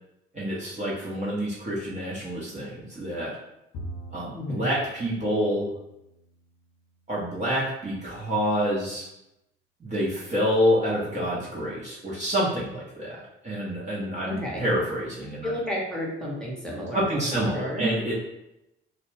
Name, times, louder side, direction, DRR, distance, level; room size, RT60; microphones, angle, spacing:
voice 1, 0.3-3.3 4.1-5.7 7.1-9.1 9.8-13.1 13.4-15.5 16.9-18.1, equal, 25° right, -7 dB, 0.8 m, -27 dB
Bowed string instrument, 3.7-7.1, right 1 dB, 60° left, 0.6 m, -44 dB
voice 2, 4.3-4.7 14.2-14.6 15.4-18.0, equal, ahead, -4 dB, 1.0 m, -31 dB
2.4 x 2.2 x 3.3 m, 0.88 s
figure-of-eight pair, 50°, 31 cm